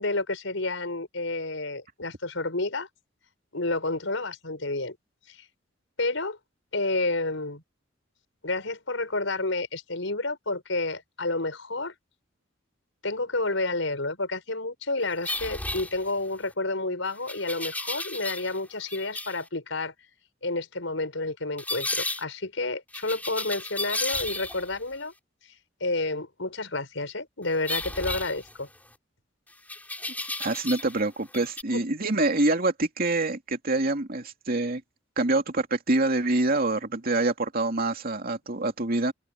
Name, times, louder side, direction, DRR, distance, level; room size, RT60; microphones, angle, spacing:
voice 1, 0.0-2.9 3.5-5.0 5.3-5.4 6.0-6.4 6.7-7.6 8.4-11.9 13.0-19.9 20.4-25.1 25.8-28.7 31.7-31.8, left 2 dB, 80° left, 5.5 m, -30 dB
sound 1, 15.2-16.4 17.3-18.6 18.9-19.4 21.6-22.2 22.9-24.8 27.6-28.9 29.7-31.0 31.3-31.6, left 2 dB, 10° left, 4.6 m, -33 dB
voice 2, 30.4-34.8 35.2-39.1, right 2 dB, 50° right, 2.7 m, -26 dB
open air
head